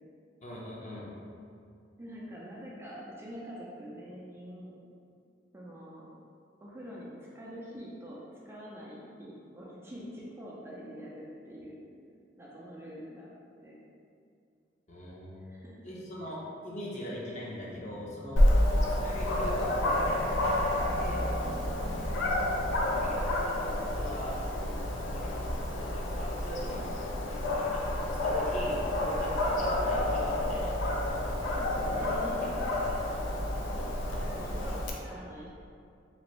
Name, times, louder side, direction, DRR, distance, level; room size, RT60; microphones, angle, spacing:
voice 1, 0.4-1.1 14.9-15.4 15.8-18.5 19.0-21.2 23.0-24.4 25.0-26.9 27.5-28.8 29.0-30.8 32.4-33.7, left 1 dB, 40° left, -5 dB, 0.6 m, -42 dB
voice 2, 2.0-4.8 5.5-6.1 6.6-11.8 12.4-13.8 15.4-15.8 18.5-18.8 21.7-22.0 31.6-32.5 33.7-33.9 34.2-35.5, equal, 15° right, -6 dB, 0.3 m, -45 dB
sound 1, 17.7-23.1, left 1 dB, 75° right, 0.5 m, -45 dB
Dog, 18.4-34.9, left 1 dB, 90° left, 0.4 m, -29 dB
3.0 x 2.5 x 3.0 m, 2.4 s
head